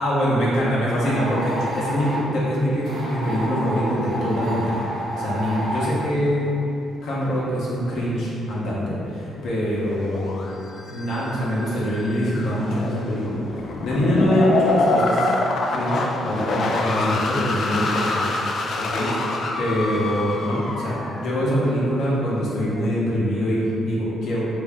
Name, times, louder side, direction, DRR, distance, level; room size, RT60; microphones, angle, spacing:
voice 1, 0.0-6.7 7.0-10.5 10.8-15.3 15.7-18.3 18.7-24.5, equal, 75° left, -8 dB, 0.9 m, -24 dB
sound 1, 1.0-2.3 2.8-5.9, right 1 dB, 70° right, 0.9 m, -30 dB
sound 2, 3.3-3.6 4.0-4.1 9.4-22.2, left 2 dB, 60° left, 0.3 m, -26 dB
3.0 x 2.7 x 3.5 m, 2.9 s
cardioid pair, 90°, 0 cm